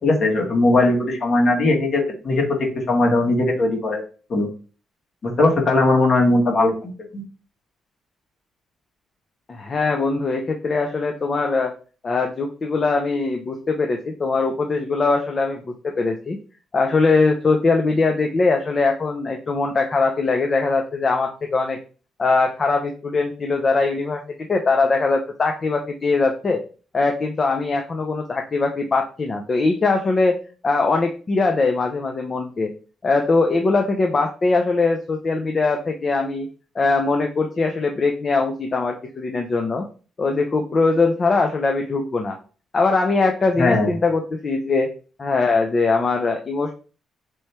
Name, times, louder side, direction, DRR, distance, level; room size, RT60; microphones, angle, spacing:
voice 1, 0.0-2.6 2.9-4.0 4.3-4.5 5.2-7.2 43.6-43.9, left 2 dB, 55° left, 0 dB, 1.5 m, -19 dB
voice 2, 9.5-11.7 12.0-16.4 16.7-21.8 22.2-26.6 26.9-30.4 30.6-32.7 33.0-36.5 36.7-39.8 40.2-42.4 42.7-44.9 45.2-46.7, left 3 dB, 35° left, 3 dB, 0.6 m, -21 dB
3.3 x 3.1 x 4.2 m, 0.38 s
cardioid pair, 90°, 0 cm